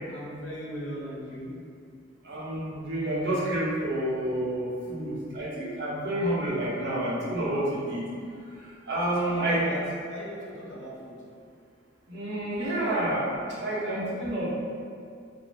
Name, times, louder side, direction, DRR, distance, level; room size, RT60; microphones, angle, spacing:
voice 1, 0.1-1.6 9.1-11.2, equal, 75° left, -5 dB, 0.6 m, -39 dB
voice 2, 2.2-8.0 8.9-9.7 12.1-13.3 13.6-14.5, right 1 dB, 60° right, -8 dB, 0.8 m, -29 dB
2.5 x 2.1 x 3.1 m, 2.3 s
head